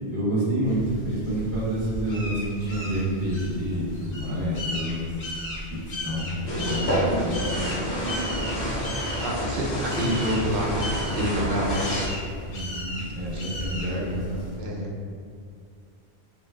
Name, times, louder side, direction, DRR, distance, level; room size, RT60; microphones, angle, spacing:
voice 1, 0.1-5.1 5.8-7.7 12.4-14.4, right 1 dB, 15° right, -9 dB, 1.1 m, -28 dB
sound 1, 0.6-14.6, equal, 70° left, 1.0 m, -36 dB
sound 2, 6.5-12.1, equal, 50° left, 0.7 m, -28 dB
voice 2, 9.2-12.0 14.6-14.9, equal, 75° right, -2 dB, 0.9 m, -28 dB
6.0 x 2.4 x 2.3 m, 2.2 s
omnidirectional pair, 1.1 m